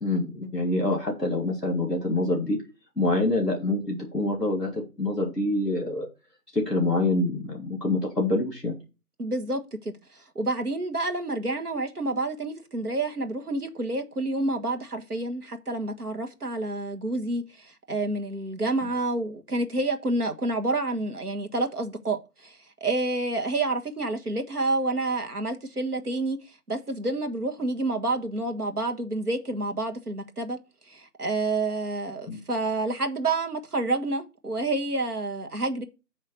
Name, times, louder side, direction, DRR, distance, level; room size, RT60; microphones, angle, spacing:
voice 1, 0.0-2.6 3.0-6.1 6.5-8.7 32.3-32.4, left 2 dB, ahead, 1.1 m, -26 dB
voice 2, 9.2-9.9 10.3-26.4 26.7-30.6 30.9-35.8, right 2 dB, 70° right, 1.6 m, -29 dB
9.3 x 3.2 x 6.6 m
figure-of-eight pair, 175°, 47 cm